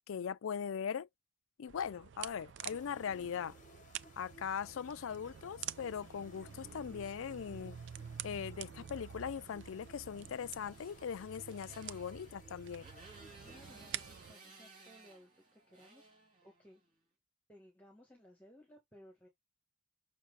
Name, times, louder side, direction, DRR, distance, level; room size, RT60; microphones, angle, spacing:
voice 1, 0.1-1.1 1.6-3.5 4.2-7.8 8.2-12.8, left 7 dB, 75° left, 0.4 m, -40 dB
sound 1, 1.7-14.3, right 10 dB, 60° right, 0.4 m, -48 dB
sound 2, 2.6-14.4, left 2 dB, 35° left, 0.9 m, -61 dB
Motorcycle, 10.2-16.9, right 3 dB, 40° right, 3.3 m, -59 dB
voice 2, 13.4-16.1 16.4-16.8 17.5-19.3, equal, 10° left, 2.0 m, -60 dB
6.4 x 4.7 x 4.0 m
head